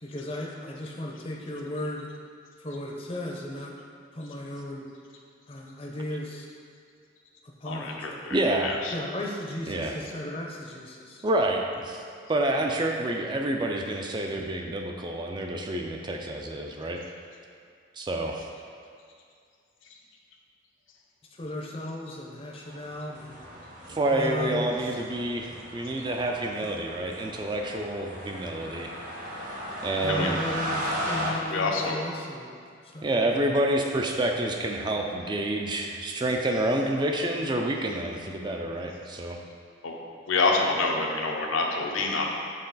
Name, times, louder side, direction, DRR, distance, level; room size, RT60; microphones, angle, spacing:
voice 1, 0.0-2.1 2.6-3.7 4.1-4.8 5.5-6.5 7.6-8.3 8.9-11.2 21.3-23.4 23.9-24.7 30.0-32.5 32.8-33.3, left 1 dB, 30° left, -1 dB, 0.6 m, -35 dB
voice 2, 7.6-8.9 30.1-30.4 31.5-32.0 39.8-40.0 40.3-42.3, left 3 dB, 90° left, 0 dB, 0.7 m, -27 dB
voice 3, 8.3-8.8 9.7-9.9 11.2-12.0 12.3-17.0 18.0-18.5 23.9-28.9 29.8-30.4 33.0-39.4, right 1 dB, 25° right, 2 dB, 0.3 m, -28 dB
sound 1, 22.6-31.3, equal, 40° right, 1.0 m, -36 dB
6.5 x 3.8 x 4.0 m, 2.3 s
head